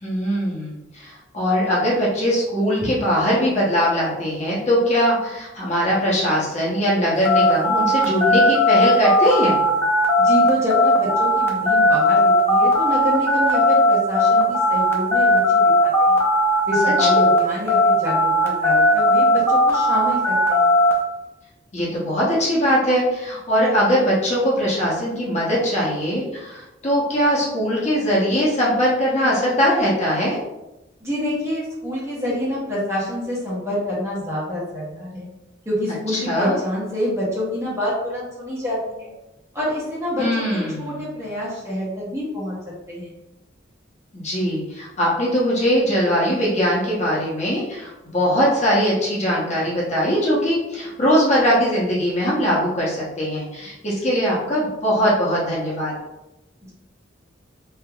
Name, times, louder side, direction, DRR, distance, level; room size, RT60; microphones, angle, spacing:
voice 1, 0.0-9.6 17.0-17.2 21.7-30.4 36.1-36.6 40.2-41.1 44.1-55.9, equal, 40° left, -6 dB, 0.8 m, -21 dB
sound 1, 7.2-17.4 17.7-20.9, left 1 dB, 15° left, 0.4 m, -17 dB
voice 2, 10.2-16.2 16.7-20.7 31.0-35.3 35.6-39.1 39.5-42.6 42.9-43.1, left 1 dB, 15° right, -7 dB, 1.1 m, -27 dB
3.4 x 2.7 x 2.3 m, 0.95 s
head